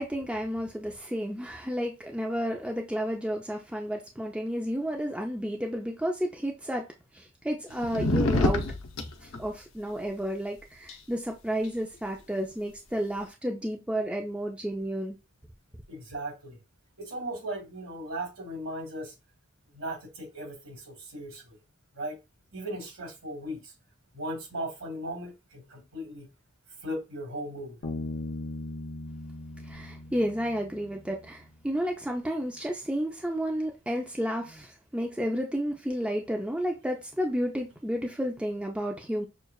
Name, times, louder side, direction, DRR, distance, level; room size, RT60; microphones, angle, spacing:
voice 1, 0.0-6.9 7.1-8.7 9.2-15.2 29.6-39.3, equal, 5° right, 0.4 m, -31 dB
sound 1, 7.7-9.4 10.9-11.0, left 2 dB, 80° left, 0.7 m, -26 dB
voice 2, 15.9-16.6 17.0-19.1 19.7-21.6 21.9-22.2 22.5-23.7 24.1-26.3 26.8-27.8, right 1 dB, 70° right, 2.3 m, -37 dB
Bass guitar, 27.8-31.4, left 2 dB, 55° left, 0.9 m, -38 dB
6.3 x 2.3 x 2.3 m
head